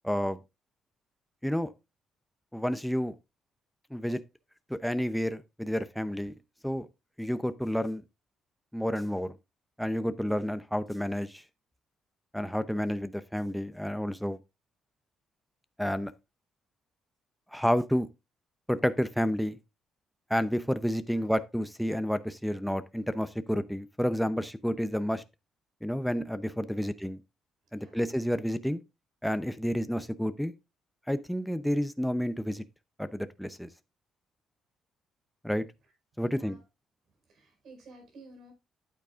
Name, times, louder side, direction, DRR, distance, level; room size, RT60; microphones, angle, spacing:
voice 1, 0.0-0.4 1.4-1.7 2.5-3.1 3.9-4.2 4.7-6.3 6.6-6.9 7.2-8.0 8.7-9.3 9.8-11.4 12.3-14.4 15.8-16.1 17.5-18.1 18.7-19.6 20.3-25.2 25.8-27.2 27.7-28.8 29.2-30.5 31.1-32.6 33.0-33.7 35.4-35.6 36.2-36.6, equal, ahead, 0.6 m, -30 dB
voice 2, 36.3-36.6 37.3-38.5, right 2 dB, 70° right, 5.0 m, -52 dB
9.4 x 8.5 x 2.5 m
cardioid pair, 90°, 0 cm